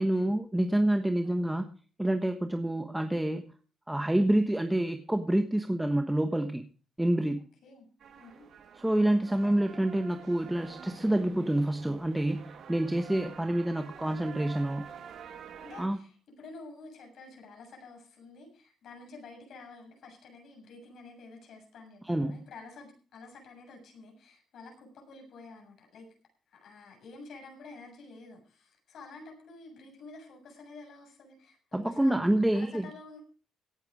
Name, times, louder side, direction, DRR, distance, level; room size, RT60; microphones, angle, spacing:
voice 1, 0.0-1.7 2.0-3.5 3.9-6.7 7.0-7.4 8.8-14.9 15.8-16.0 22.1-22.4 31.7-32.9, right 1 dB, 10° right, 7 dB, 1.2 m, -27 dB
sound 1, 8.0-15.9, right 7 dB, 65° right, 2.0 m, -48 dB
voice 2, 8.2-8.5 9.4-9.9 15.6-26.1 26.5-33.2, left 3 dB, 70° left, 3 dB, 7.1 m, -50 dB
17.5 x 9.5 x 4.9 m, 0.38 s
cardioid pair, 90°, 0 cm